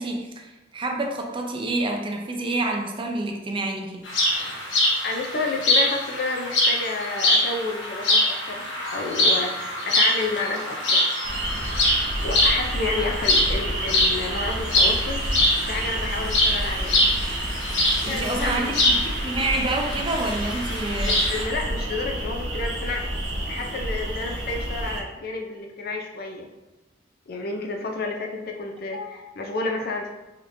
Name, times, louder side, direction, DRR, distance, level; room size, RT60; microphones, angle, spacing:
voice 1, 0.0-4.1 18.0-21.2 28.9-29.1, right 2 dB, 25° right, 2 dB, 0.4 m, -28 dB
sound 1, 4.1-21.4, left 1 dB, 80° left, 1.0 m, -24 dB
voice 2, 5.0-11.0 12.2-15.2 15.7-16.9 18.0-18.7 21.0-23.1 23.5-26.5 27.3-30.1, left 3 dB, 50° left, 2 dB, 0.5 m, -30 dB
sound 2, 11.2-25.0, right 1 dB, 75° right, 0.7 m, -30 dB
5.0 x 2.9 x 2.6 m, 1.1 s
head